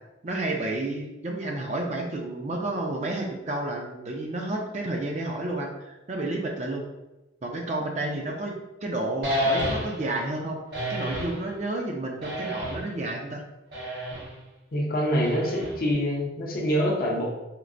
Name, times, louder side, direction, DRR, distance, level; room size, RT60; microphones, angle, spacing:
voice 1, 0.2-6.9 7.4-10.6 10.9-13.4, right 2 dB, 35° right, 1 dB, 0.4 m, -31 dB
sound 1, 9.2-10.1 10.7-11.4 12.2-13.0 13.7-14.3 15.2-15.9, equal, 60° right, 1.2 m, -30 dB
voice 2, 14.7-17.3, equal, 50° left, -1 dB, 0.6 m, -25 dB
4.4 x 2.0 x 2.5 m, 1.0 s
head